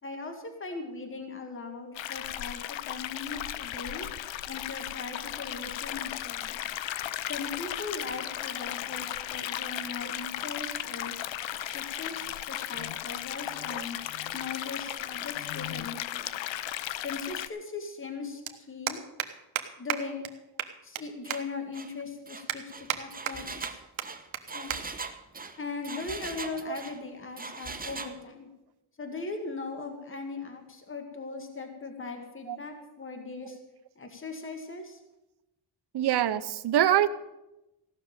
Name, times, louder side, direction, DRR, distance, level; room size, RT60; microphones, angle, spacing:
voice 1, 0.0-4.1 4.5-6.6 7.3-11.1 11.5-14.0 14.3-16.4 17.0-19.0 19.8-20.2 20.8-23.8 24.5-24.7 25.6-28.5 29.0-33.6 34.0-35.0, left 4 dB, 25° left, 5 dB, 2.0 m, -39 dB
sound 1, 1.9-17.5, left 12 dB, 70° left, 0.7 m, -36 dB
sound 2, 17.7-17.8 18.0-18.2 18.5-18.6 18.9-19.3 19.6-19.7 19.9-20.0 20.2-20.3 20.6-21.0 21.3-21.4 21.9-22.0 22.5-23.0 23.3-23.7 24.0-24.1 24.3-24.4 24.7-24.8 25.1-25.3 26.1-26.4, right 11 dB, 75° right, 1.2 m, -32 dB
Engine, 21.2-21.4 21.7-21.9 22.3-27.0 27.4-28.2, right 4 dB, 20° right, 1.0 m, -40 dB
voice 2, 35.9-37.1, right 11 dB, 55° right, 12 dB, 0.8 m, -25 dB
15.5 x 6.4 x 8.9 m, 0.97 s
cardioid pair, 120°, 47 cm